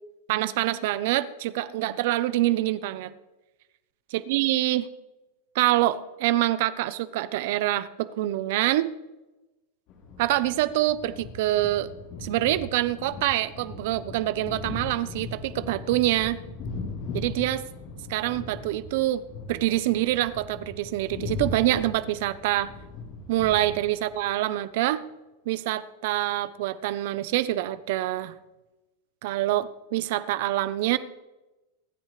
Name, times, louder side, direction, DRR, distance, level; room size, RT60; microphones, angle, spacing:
voice 1, 0.3-3.1 4.1-4.9 5.5-8.9 10.2-11.9 12.2-16.4 17.1-17.6 18.1-19.2 19.5-22.7 23.3-25.0 25.5-28.3 29.2-31.0, right 15 dB, 55° right, 15 dB, 0.7 m, -25 dB
sound 1, 9.9-24.2, left 3 dB, 40° left, 4.2 m, -39 dB
25.0 x 9.8 x 3.3 m, 1.1 s
supercardioid pair, 165°, 0 cm